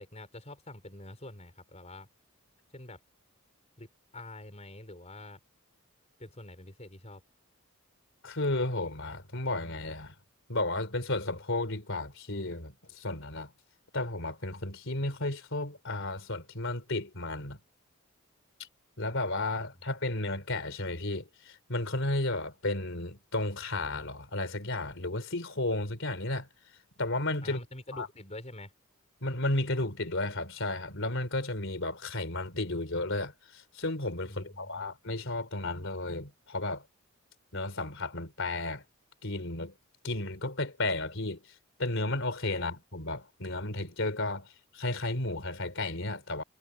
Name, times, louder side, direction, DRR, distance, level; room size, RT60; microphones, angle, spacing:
voice 1, 0.0-2.1 2.7-3.0 3.8-3.9 4.1-5.4 6.2-7.2 27.4-28.7 34.3-34.9 42.5-42.6, left 1 dB, 30° left, 5.8 m, -46 dB
voice 2, 8.2-10.1 10.5-13.5 13.9-17.6 18.6-18.7 19.0-26.5 27.0-27.6 27.9-28.1 29.2-36.8 37.5-38.8 39.2-39.7 40.0-41.4 41.8-44.5 44.7-46.4, left 2 dB, 60° left, 3.9 m, -33 dB
head